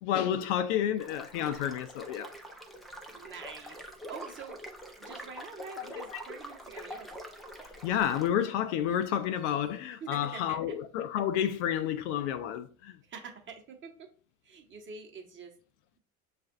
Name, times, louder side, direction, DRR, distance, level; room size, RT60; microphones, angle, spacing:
voice 1, 0.0-2.3 5.9-6.0 7.8-13.0, left 10 dB, 55° left, 0.5 m, -30 dB
sound 1, 1.0-8.3, equal, ahead, 0.4 m, -45 dB
voice 2, 3.1-3.8 4.1-4.6 5.0-7.1 10.0-10.8 13.0-14.1 14.4-15.5, right 5 dB, 25° right, 0.9 m, -45 dB
6.4 x 2.5 x 2.5 m
hypercardioid pair, 80°, 43 cm